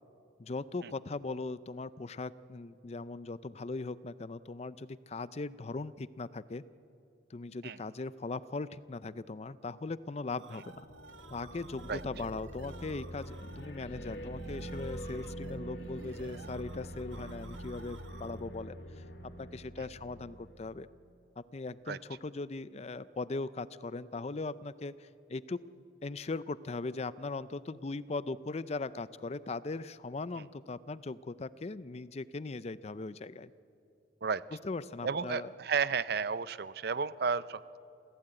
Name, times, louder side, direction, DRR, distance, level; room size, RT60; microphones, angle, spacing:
voice 1, 0.4-6.6 7.3-10.9 11.3-18.8 19.2-20.9 21.4-25.6 26.0-33.5 34.6-35.5, left 3 dB, 35° left, 17 dB, 0.5 m, -39 dB
sound 1, 10.1-18.6, right 4 dB, 90° right, 1.3 m, -54 dB
sound 2, 10.7-20.9, equal, 65° left, 2.3 m, -45 dB
voice 2, 35.0-37.8, right 5 dB, 55° right, 16 dB, 0.6 m, -32 dB
27.5 x 16.0 x 8.9 m, 2.7 s
head